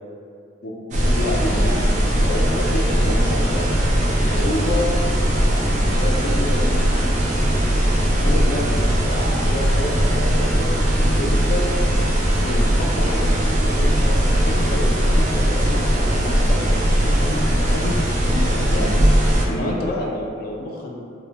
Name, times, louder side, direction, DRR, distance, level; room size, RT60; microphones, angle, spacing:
voice 1, 0.6-3.6 4.3-4.9 5.2-6.8 8.2-11.7 12.4-17.4 17.7-21.0, left 1 dB, 50° left, -2 dB, 0.3 m, -29 dB
sound 1, 0.9-19.5, equal, 40° right, 0.3 m, -19 dB
2.5 x 2.0 x 2.7 m, 2.3 s
head